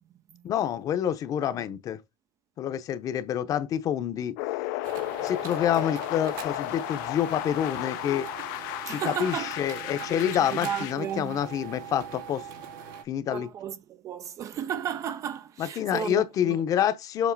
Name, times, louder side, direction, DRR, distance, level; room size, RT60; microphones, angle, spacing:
voice 1, 0.4-2.0 2.6-4.4 5.2-8.3 8.8-12.4 13.1-13.5 15.6-17.3, left 10 dB, 35° left, 0.7 m, -27 dB
sound 1, 4.4-10.9, left 18 dB, 80° left, 0.6 m, -34 dB
sound 2, 4.8-13.0, right 7 dB, 85° right, 2.1 m, -41 dB
voice 2, 8.9-9.5 10.2-11.4 13.3-16.6, right 9 dB, 30° right, 0.4 m, -34 dB
7.4 x 3.1 x 4.6 m
cardioid pair, 165°, 11 cm